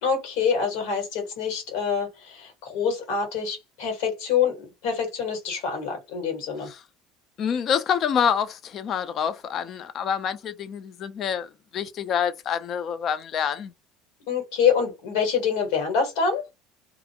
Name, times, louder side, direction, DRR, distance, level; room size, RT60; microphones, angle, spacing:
voice 1, 0.0-6.7 14.2-16.4, left 6 dB, 80° left, 1.4 m, -26 dB
voice 2, 7.4-13.7, left 7 dB, 45° left, 0.5 m, -27 dB
2.4 x 2.1 x 2.8 m
supercardioid pair, 100°, 0 cm